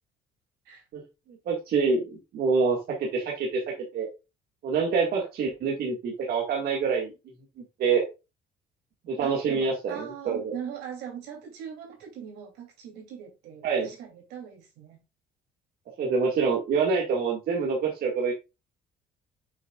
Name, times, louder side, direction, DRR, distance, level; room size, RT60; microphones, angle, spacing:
voice 1, 1.5-4.1 4.6-7.1 7.8-8.0 9.1-10.5 13.6-13.9 16.0-18.3, right 5 dB, 65° right, 1.9 m, -26 dB
voice 2, 9.2-15.0, right 8 dB, 85° right, 3.0 m, -41 dB
7.0 x 6.2 x 2.4 m
cardioid pair, 110°, 17 cm